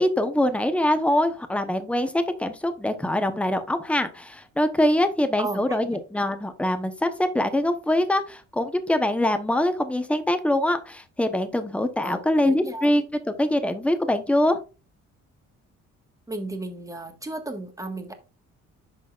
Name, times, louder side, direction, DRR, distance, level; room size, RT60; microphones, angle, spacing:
voice 1, 0.0-14.6, left 1 dB, 5° left, 9 dB, 0.9 m, -24 dB
voice 2, 5.4-5.8 12.0-12.9 16.3-18.1, right 2 dB, 10° right, 5 dB, 1.5 m, -34 dB
11.5 x 4.1 x 2.5 m, 0.32 s
cardioid pair, 90°, 30 cm